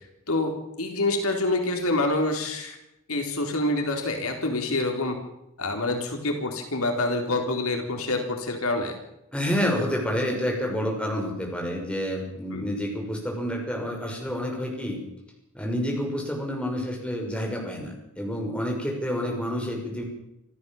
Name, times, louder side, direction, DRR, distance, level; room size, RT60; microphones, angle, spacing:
voice 1, 0.8-2.8 3.1-5.2 5.6-9.0 12.5-12.7, left 2 dB, 75° left, 4 dB, 3.9 m, -26 dB
voice 2, 9.3-15.0 15.5-20.0, equal, 5° left, 0 dB, 6.1 m, -29 dB
27.0 x 14.0 x 7.2 m, 0.86 s
head